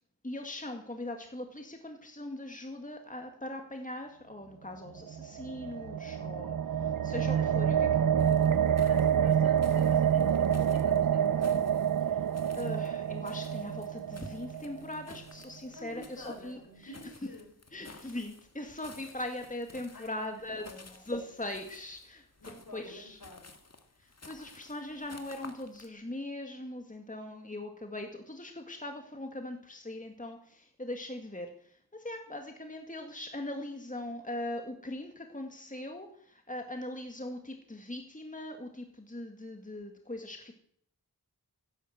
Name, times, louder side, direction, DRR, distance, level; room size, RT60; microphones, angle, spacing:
voice 1, 0.2-7.9 12.1-12.2 12.6-16.9 17.2-17.3 17.7-23.2 24.2-40.5, left 1 dB, 20° left, 4 dB, 2.1 m, -40 dB
sound 1, 5.0-15.2, right 8 dB, 60° right, 0.6 m, -27 dB
voice 2, 7.3-8.5 8.8-11.6 15.7-17.5 19.9-20.9 22.4-23.5, left 1 dB, 65° left, 3 dB, 5.5 m, -49 dB
sound 2, 8.2-25.9, left 3 dB, 40° left, 2.0 m, -54 dB
15.5 x 10.5 x 8.0 m, 0.66 s
wide cardioid pair, 55°, 38 cm